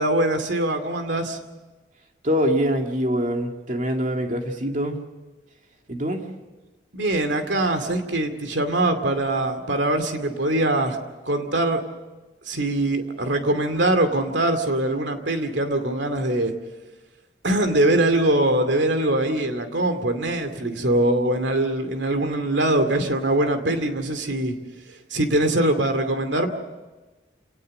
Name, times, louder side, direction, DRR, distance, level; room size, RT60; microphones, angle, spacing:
voice 1, 0.0-1.4 6.9-11.0 11.3-11.8 12.4-16.5 17.4-24.6 25.1-26.5, right 1 dB, 70° right, 8 dB, 2.5 m, -22 dB
voice 2, 2.2-5.0 5.9-6.2, equal, 45° right, 3 dB, 2.5 m, -24 dB
27.5 x 18.5 x 6.6 m, 1.2 s
head